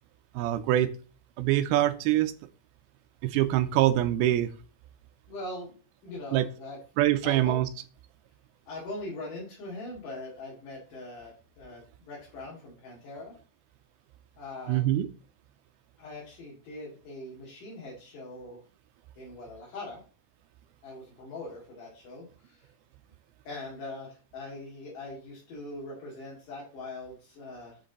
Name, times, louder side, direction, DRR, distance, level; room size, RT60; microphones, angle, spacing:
voice 1, 0.3-0.9 1.4-2.3 3.2-4.5 6.3-6.5 7.0-7.7 14.7-15.1, right 13 dB, 80° right, 10 dB, 2.4 m, -24 dB
voice 2, 5.3-5.8 6.0-6.8 7.2-7.6 8.7-13.3 14.4-14.8 16.0-18.6 19.2-20.0 20.8-22.7 23.5-27.8, left 2 dB, 60° left, -5 dB, 3.8 m, -41 dB
7.4 x 5.0 x 4.0 m, 0.39 s
omnidirectional pair, 4.6 m